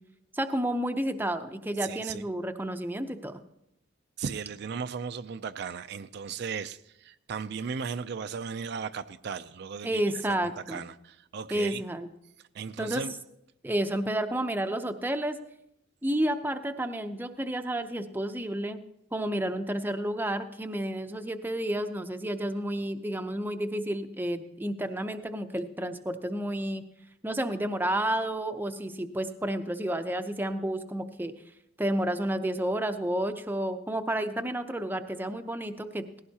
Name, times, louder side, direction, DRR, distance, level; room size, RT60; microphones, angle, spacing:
voice 1, 0.3-3.4 9.8-10.8 11.5-12.1 12.8-13.0 13.6-15.4 16.0-18.8 19.1-26.8 27.2-31.3 31.8-36.2, right 1 dB, 10° right, 7 dB, 0.6 m, -31 dB
voice 2, 1.8-2.2 4.2-10.0 10.4-11.8 12.5-13.1, right 6 dB, 55° right, 10 dB, 0.4 m, -36 dB
18.0 x 16.0 x 2.8 m, 0.80 s
head